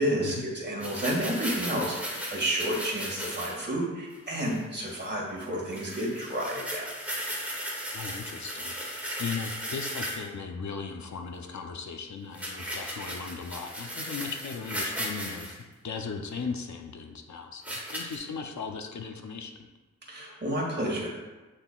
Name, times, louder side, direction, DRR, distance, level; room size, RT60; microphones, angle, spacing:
voice 1, 0.0-6.9 20.1-21.1, right 1 dB, 35° right, -2 dB, 2.1 m, -30 dB
sound 1, 0.8-3.6 4.1-4.6 4.9-5.1 5.4-5.5 5.7-10.3 12.3-15.5 16.4-16.5 17.6-18.2, equal, 5° right, 2.0 m, -36 dB
voice 2, 7.9-8.7 9.2-15.6 15.8-19.6, left 5 dB, 65° left, 4 dB, 0.7 m, -37 dB
8.8 x 5.7 x 2.4 m, 1.2 s
cardioid pair, 80°, 31 cm